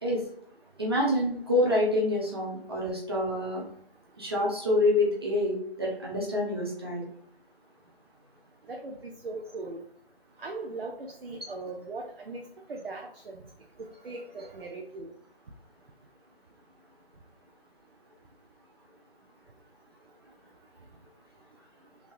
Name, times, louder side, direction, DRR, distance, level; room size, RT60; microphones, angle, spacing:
voice 1, 0.8-3.6 4.2-7.1, left 1 dB, 25° right, -3 dB, 0.7 m, -27 dB
voice 2, 8.7-9.8 10.4-12.4 12.7-13.4 14.0-15.1, right 3 dB, 65° right, 2 dB, 0.7 m, -39 dB
3.8 x 3.6 x 2.6 m, 0.66 s
figure-of-eight pair, 155°, 31 cm